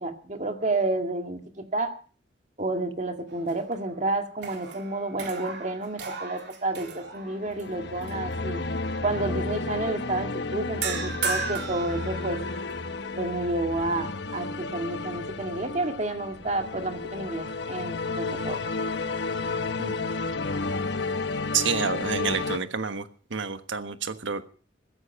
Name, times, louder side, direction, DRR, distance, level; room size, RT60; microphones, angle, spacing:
voice 1, 0.0-1.9 2.6-8.6 9.0-12.4 13.2-18.6, right 2 dB, 40° right, 5 dB, 2.1 m, -30 dB
sound 1, 3.3-4.0 4.3-7.6 8.1-8.3 10.8-12.8, right 4 dB, 60° right, 3.8 m, -35 dB
sound 2, 7.2-22.6, left 3 dB, 60° left, 1.0 m, -32 dB
voice 2, 21.5-24.5, right 6 dB, 80° right, 9 dB, 1.4 m, -29 dB
15.5 x 13.5 x 5.9 m, 0.40 s
head